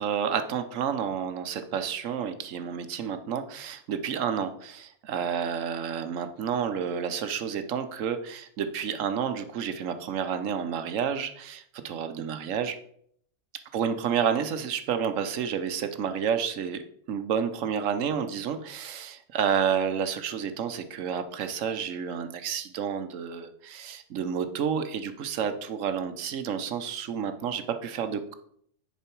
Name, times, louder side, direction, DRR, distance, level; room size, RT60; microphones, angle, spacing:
voice 1, 0.0-12.7 13.7-16.8 17.1-28.3, right 7 dB, 85° right, 9 dB, 1.2 m, -30 dB
10.0 x 4.7 x 4.5 m, 0.66 s
omnidirectional pair, 1.3 m